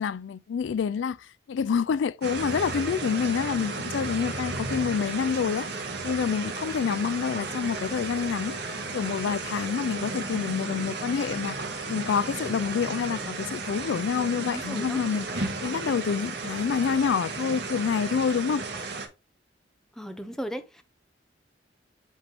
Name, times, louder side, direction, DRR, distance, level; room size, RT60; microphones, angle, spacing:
voice 1, 0.0-11.6 11.9-15.3 15.6-18.6, left 6 dB, 80° left, 0.3 m, -27 dB
sound 1, 2.2-19.1, right 3 dB, 60° right, 1.8 m, -34 dB
voice 2, 14.1-15.0 20.0-20.8, equal, 5° left, 0.7 m, -37 dB
9.9 x 3.4 x 2.8 m
head